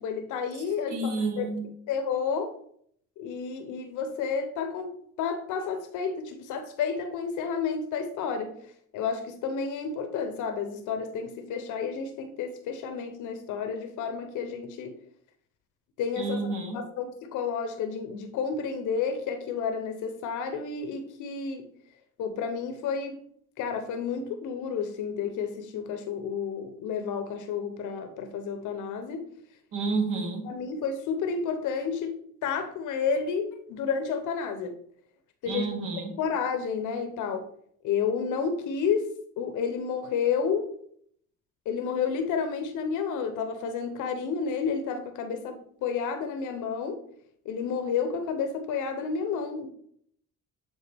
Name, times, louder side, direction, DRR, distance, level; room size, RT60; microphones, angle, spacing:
voice 1, 0.0-1.5 1.9-2.5 3.2-8.6 8.9-14.9 16.0-21.7 22.2-23.2 23.6-29.3 30.4-34.8 35.4-35.7 36.2-37.5 37.8-40.7 41.7-47.0 47.4-49.7, left 6 dB, 90° left, 0.7 m, -31 dB
voice 2, 0.9-1.6 16.2-16.8 29.7-30.5 35.5-36.2, right 3 dB, 85° right, 1.3 m, -30 dB
7.4 x 3.8 x 3.4 m
cardioid pair, 90°, 30 cm